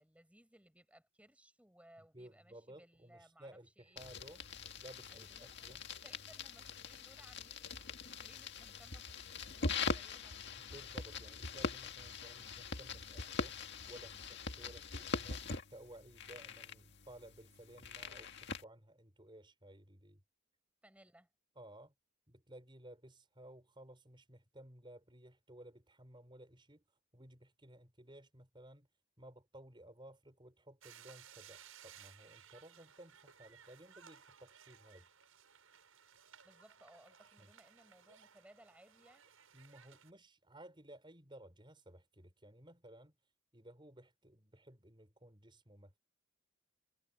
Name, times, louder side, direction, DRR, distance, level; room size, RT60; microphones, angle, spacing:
voice 1, 0.0-3.5 3.8-4.1 5.1-9.0 9.5-10.5 20.8-21.3 36.4-39.3, right 1 dB, 5° right, 6.6 m, -64 dB
voice 2, 2.0-4.4 4.8-5.8 10.6-20.2 21.6-21.9 22.3-28.9 29.2-35.1 37.4-37.5 39.5-43.1 43.5-46.0, right 1 dB, 20° right, 5.8 m, -57 dB
sound 1, 4.0-18.6, left 4 dB, 55° left, 1.9 m, -43 dB
sound 2, 30.8-40.1, right 8 dB, 75° right, 7.4 m, -60 dB
head